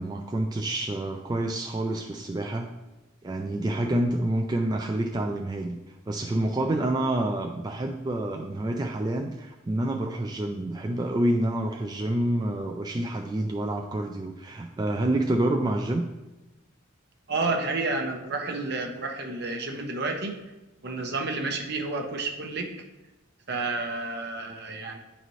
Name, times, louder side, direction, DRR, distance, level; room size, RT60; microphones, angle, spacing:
voice 1, 0.0-2.7 3.2-5.8 6.1-16.1, right 1 dB, 20° right, 2 dB, 0.3 m, -28 dB
voice 2, 17.3-20.4 20.8-22.7 23.5-25.0, right 3 dB, 55° right, 3 dB, 0.8 m, -30 dB
10.0 x 4.1 x 3.1 m, 1.1 s
head